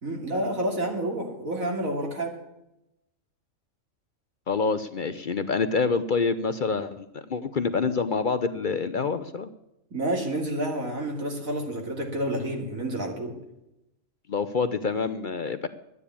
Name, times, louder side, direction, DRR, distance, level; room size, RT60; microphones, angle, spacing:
voice 1, 0.0-2.3 9.9-13.3, right 1 dB, 90° right, 1 dB, 3.1 m, -29 dB
voice 2, 4.5-9.5 14.3-15.7, left 4 dB, 50° left, 11 dB, 0.6 m, -27 dB
12.0 x 9.5 x 8.5 m, 0.89 s
omnidirectional pair, 1.4 m